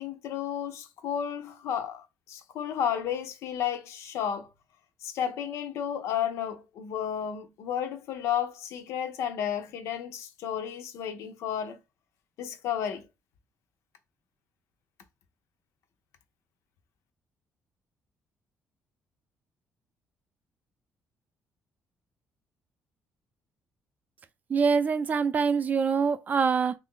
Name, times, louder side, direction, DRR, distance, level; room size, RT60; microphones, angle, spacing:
voice 1, 0.0-4.5 5.0-11.8 12.4-13.1, left 9 dB, 80° left, 0.6 m, -32 dB
voice 2, 24.5-26.7, right 5 dB, 35° right, 0.4 m, -24 dB
3.2 x 2.5 x 3.7 m
cardioid pair, 140°, 5 cm